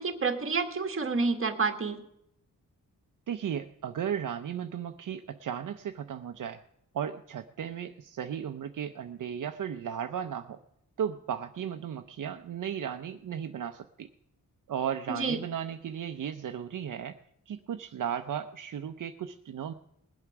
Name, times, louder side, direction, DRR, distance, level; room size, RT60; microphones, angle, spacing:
voice 1, 0.0-2.0 15.1-15.4, right 4 dB, 40° right, 5 dB, 1.6 m, -29 dB
voice 2, 3.3-6.6 6.9-10.6 11.0-14.1 14.7-17.2 17.5-19.7, right 8 dB, 70° right, 7 dB, 0.7 m, -35 dB
20.5 x 8.0 x 6.0 m, 0.77 s
wide cardioid pair, 125°, 33 cm